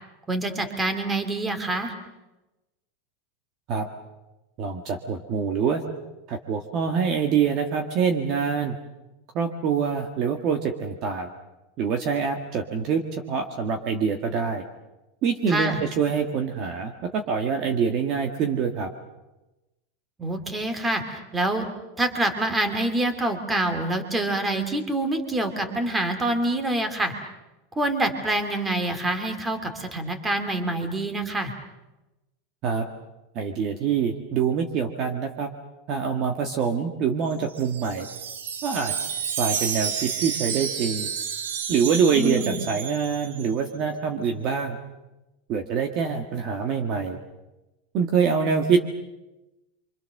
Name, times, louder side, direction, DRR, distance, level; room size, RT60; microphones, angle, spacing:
voice 1, 0.3-1.9 15.5-15.8 20.2-21.7 22.0-27.1 27.8-31.5 42.1-42.6, right 2 dB, 10° right, 7 dB, 2.5 m, -26 dB
voice 2, 4.6-5.8 6.3-8.8 9.3-11.3 11.8-13.0 13.3-14.6 15.2-18.9 32.6-32.8 33.3-35.5 35.9-38.1 38.6-38.9 39.4-41.1 41.7-44.8 45.5-47.2 47.9-48.8, right 6 dB, 35° right, 4 dB, 1.7 m, -25 dB
Wind chime, 37.3-43.5, right 7 dB, 85° right, 2.4 m, -31 dB
28.5 x 25.0 x 6.6 m, 1.0 s
supercardioid pair, 165°, 0 cm